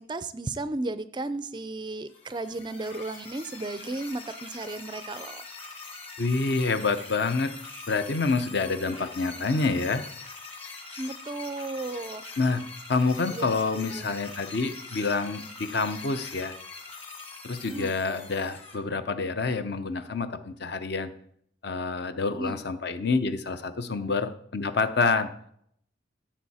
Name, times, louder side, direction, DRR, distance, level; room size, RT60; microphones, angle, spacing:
voice 1, 0.0-5.4 11.0-12.3 13.3-13.5 13.7-14.1 14.6-14.7 17.6-17.9 22.3-22.6, right 2 dB, 20° right, 13 dB, 0.4 m, -34 dB
sound 1, 2.1-18.7, left 3 dB, 30° left, 1.8 m, -43 dB
voice 2, 6.2-7.5 7.9-10.0 12.4-12.6 12.9-16.5 17.4-21.1 21.6-25.3, left 4 dB, 55° left, 10 dB, 0.7 m, -27 dB
14.5 x 7.3 x 4.2 m, 0.68 s
head